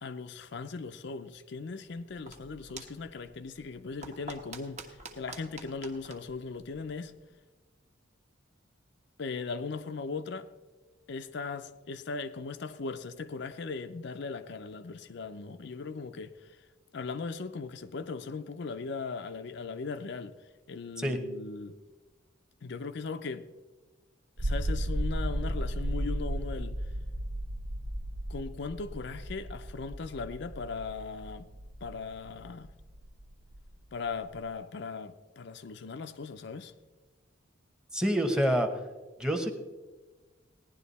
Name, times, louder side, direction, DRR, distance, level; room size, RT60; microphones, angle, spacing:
voice 1, 0.0-7.1 9.2-10.5 11.1-16.6 16.9-20.4 20.7-21.8 22.6-23.5 24.4-26.8 28.3-31.5 31.8-32.7 33.9-36.7, left 4 dB, 60° left, 0.5 m, -38 dB
sound 1, 1.9-7.3, right 3 dB, 35° right, 1.3 m, -49 dB
sound 2, 24.4-34.5, right 1 dB, 55° right, 0.7 m, -35 dB
voice 2, 37.9-38.7 39.2-39.5, equal, 5° right, 1.1 m, -27 dB
16.5 x 11.0 x 4.1 m
head